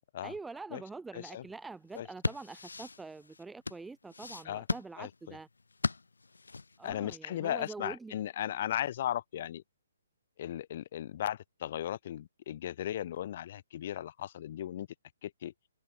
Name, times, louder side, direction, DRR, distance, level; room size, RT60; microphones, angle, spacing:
voice 1, 0.2-5.5 6.8-8.1, right 3 dB, 5° right, 2.3 m, -45 dB
voice 2, 1.1-1.4 1.9-2.1 4.5-4.6 5.0-5.4 6.8-9.6 10.4-14.9 15.2-15.5, left 11 dB, 45° left, 0.4 m, -36 dB
sound 1, 1.8-6.9, left 4 dB, 80° left, 1.1 m, -37 dB
figure-of-eight pair, 135°, 0 cm